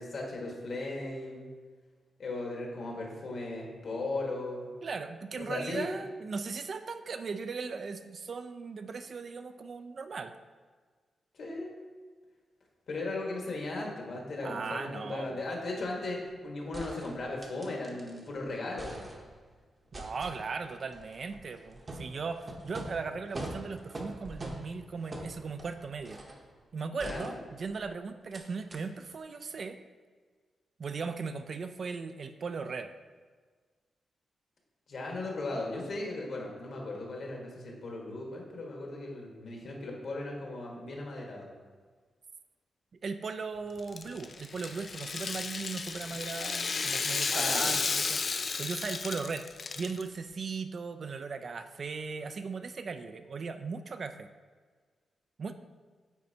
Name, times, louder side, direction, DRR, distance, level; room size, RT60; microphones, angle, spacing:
voice 1, 0.0-1.5 2.2-4.7 5.4-5.9 11.3-11.8 12.9-18.9 27.0-27.4 34.9-41.4 47.3-47.8, left 2 dB, 60° left, -1 dB, 1.4 m, -37 dB
voice 2, 4.8-10.3 14.4-15.4 19.9-26.2 26.7-29.8 30.8-32.9 43.0-48.2 48.6-54.3 55.4-55.5, right 4 dB, 50° right, 9 dB, 0.3 m, -38 dB
sound 1, 16.7-18.3 18.6-19.5 19.9-26.5 27.0-27.9 28.3-28.4 28.7-28.8, right 1 dB, 30° right, 0.8 m, -44 dB
Rattle (instrument), 43.8-50.0, left 4 dB, 45° left, 0.3 m, -33 dB
9.1 x 4.2 x 2.8 m, 1.5 s
wide cardioid pair, 120°, 0 cm